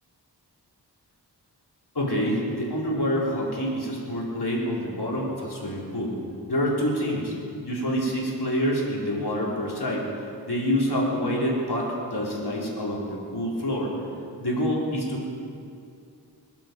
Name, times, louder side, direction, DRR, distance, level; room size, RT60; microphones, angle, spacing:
voice 1, 1.9-6.1 6.5-7.3 7.6-10.0 10.4-13.9 14.4-15.3, equal, 70° left, -4 dB, 4.1 m, -27 dB
22.5 x 12.0 x 5.3 m, 2.5 s
wide cardioid pair, 55°, 41 cm